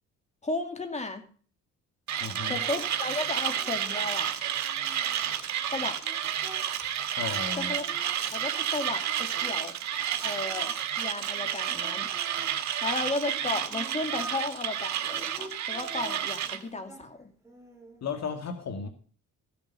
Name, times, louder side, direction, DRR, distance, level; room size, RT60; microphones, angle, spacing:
voice 1, 0.4-1.2 2.5-4.3 5.7-6.3 7.6-9.8 10.2-12.1 12.8-17.3, left 2 dB, 20° left, 5 dB, 2.6 m, -34 dB
Mechanisms, 2.1-16.6, right 10 dB, 65° right, 1.6 m, -31 dB
voice 2, 2.2-2.6 7.2-7.7 18.0-18.9, left 5 dB, 60° left, 6 dB, 2.2 m, -34 dB
Singing, 2.4-6.9 7.2-9.6 9.9-12.5 13.1-14.5 15.0-17.1 17.4-18.0, right 2 dB, 10° right, 3.9 m, -47 dB
15.0 x 7.1 x 5.5 m, 0.43 s
cardioid pair, 90°, 30 cm